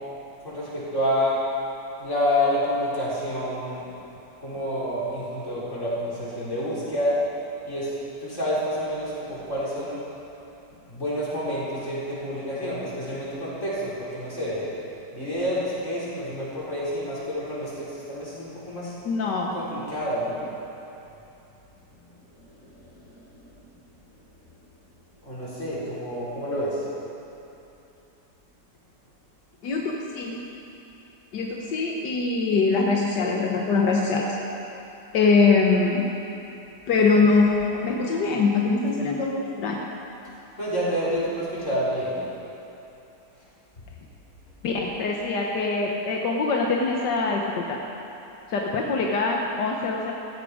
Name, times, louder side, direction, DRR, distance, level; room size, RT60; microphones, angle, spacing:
voice 1, 0.4-1.4 2.0-3.8 4.4-7.2 7.6-7.9 8.2-10.0 10.9-14.7 15.1-18.9 19.5-20.5 22.4-23.5 25.2-26.8 40.6-42.2, equal, 45° left, -8 dB, 5.0 m, -28 dB
voice 2, 19.1-19.5 29.6-30.4 31.3-34.4 35.1-36.1 36.9-39.8 44.6-47.6 48.5-50.1, left 4 dB, 85° left, -1 dB, 1.7 m, -23 dB
17.5 x 14.0 x 4.9 m, 2.9 s
omnidirectional pair, 1.8 m